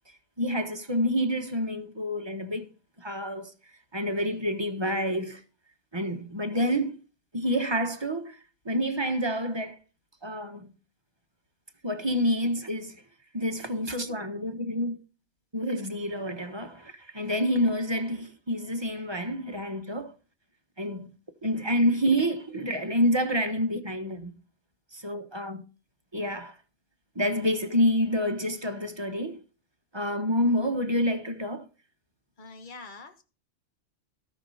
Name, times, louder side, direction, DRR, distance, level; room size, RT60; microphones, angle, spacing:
voice 1, 0.4-2.7 3.0-3.5 3.9-5.4 5.9-7.0 7.3-8.4 8.6-9.8 10.2-10.7 11.8-13.0 13.3-15.0 15.5-20.1 20.8-21.2 21.4-24.3 24.9-25.6 26.1-26.6 27.1-29.4 29.9-31.6, equal, 25° right, 1.3 m, -28 dB
voice 2, 32.4-33.2, left 3 dB, 45° left, 1.5 m, -44 dB
16.5 x 6.5 x 4.2 m
omnidirectional pair, 1.2 m